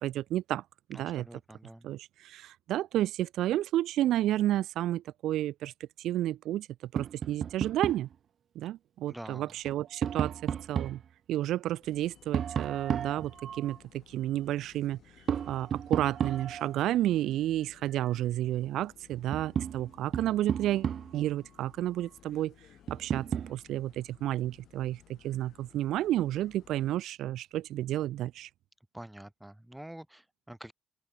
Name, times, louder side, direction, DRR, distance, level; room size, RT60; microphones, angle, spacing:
voice 1, 0.0-0.6 0.9-1.3 1.8-5.7 6.0-6.7 6.9-8.1 8.5-11.0 11.3-15.0 15.5-22.5 22.9-28.5, right 13 dB, 85° right, 0.7 m, -31 dB
voice 2, 0.9-1.9 9.1-9.5 28.9-30.7, right 1 dB, 5° right, 2.3 m, -46 dB
Tap, 7.0-8.1 9.5-11.0 12.3-13.8 15.3-16.8 18.6-18.7 19.1-21.3 22.9-23.6, right 8 dB, 60° right, 1.1 m, -33 dB
sound 1, 11.8-27.0, left 11 dB, 75° left, 4.4 m, -59 dB
open air
cardioid pair, 90°, 0 cm